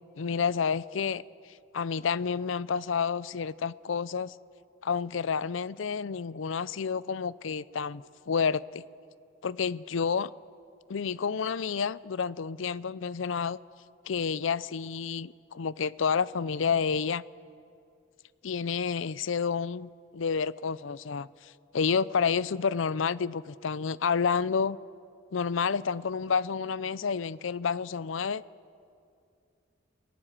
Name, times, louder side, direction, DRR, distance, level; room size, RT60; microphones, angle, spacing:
voice 1, 0.2-1.2 1.7-4.3 4.8-8.8 9.4-10.3 10.9-13.6 14.1-17.2 18.4-24.8 25.3-28.4, left 6 dB, 75° left, 19 dB, 0.5 m, -29 dB
28.5 x 18.0 x 7.5 m, 2.4 s
head